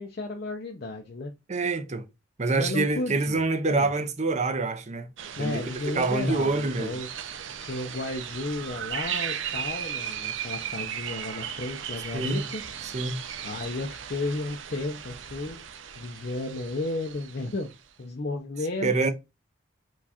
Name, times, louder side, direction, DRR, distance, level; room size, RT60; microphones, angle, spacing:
voice 1, 0.0-1.3 2.6-3.9 5.4-7.1 7.6-12.6 13.4-15.6 16.0-17.7 18.0-18.9, left 2 dB, 50° left, 0.6 m, -33 dB
voice 2, 1.5-2.0 2.4-5.1 5.4-7.0 12.1-12.4 12.8-13.2 18.8-19.1, right 3 dB, 35° right, 0.6 m, -26 dB
sound 1, 5.2-17.7, right 9 dB, 75° right, 0.6 m, -36 dB
4.6 x 2.4 x 4.2 m
head